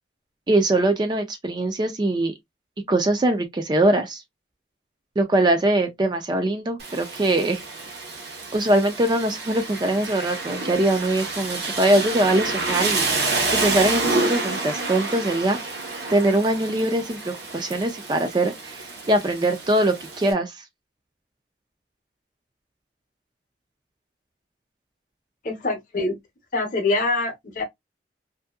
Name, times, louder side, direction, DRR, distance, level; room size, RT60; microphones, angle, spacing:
voice 1, 0.5-2.3 2.9-4.2 5.2-7.6 8.5-13.1 13.6-15.6 16.1-20.6, right 1 dB, 25° right, 0.4 m, -22 dB
Rain, 6.8-20.3, right 3 dB, 65° right, 0.8 m, -29 dB
voice 2, 25.4-26.2 26.5-27.6, left 2 dB, 45° left, 0.7 m, -24 dB
2.6 x 2.6 x 2.3 m
head